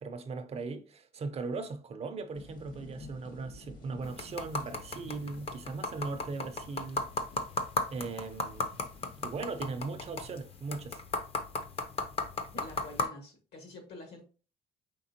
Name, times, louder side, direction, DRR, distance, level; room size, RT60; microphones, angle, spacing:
voice 1, 0.0-7.1 7.9-8.8 9.2-11.0, right 4 dB, 40° right, 0.5 m, -38 dB
sound 1, 2.3-9.7, left 2 dB, 55° left, 1.1 m, -53 dB
sound 2, 4.0-13.0, left 3 dB, 35° left, 0.6 m, -36 dB
voice 2, 12.5-14.2, left 2 dB, 75° left, 1.7 m, -47 dB
5.2 x 3.4 x 2.8 m
cardioid pair, 110°, 17 cm